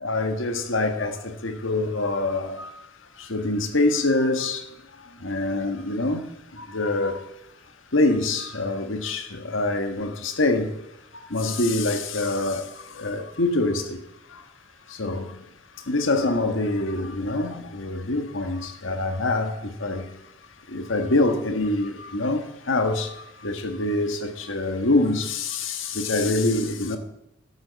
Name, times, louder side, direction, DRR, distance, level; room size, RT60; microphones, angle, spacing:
voice 1, 0.0-2.9 3.1-7.3 7.9-10.8 11.1-14.0 14.3-14.5 14.9-15.5 15.7-20.3 20.6-27.0, left 2 dB, 70° left, 1.5 m, -25 dB
12.0 x 8.7 x 7.4 m
head